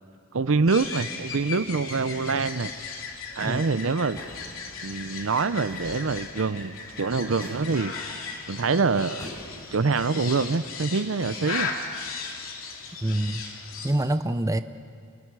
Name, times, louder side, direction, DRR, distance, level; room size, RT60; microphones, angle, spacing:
voice 1, 0.3-2.7 3.4-4.2 4.8-7.9 8.5-9.3 9.7-11.7, right 4 dB, 70° right, 14 dB, 0.6 m, -25 dB
sound 1, 0.7-13.9, left 5 dB, 85° left, 2.7 m, -37 dB
sound 2, 4.1-4.4 5.7-6.0 7.3-7.7 9.2-9.6, equal, 20° left, 7.4 m, -42 dB
voice 2, 13.0-13.4 13.8-14.6, right 1 dB, 15° right, 10 dB, 0.6 m, -26 dB
29.5 x 28.0 x 4.8 m, 2.2 s
head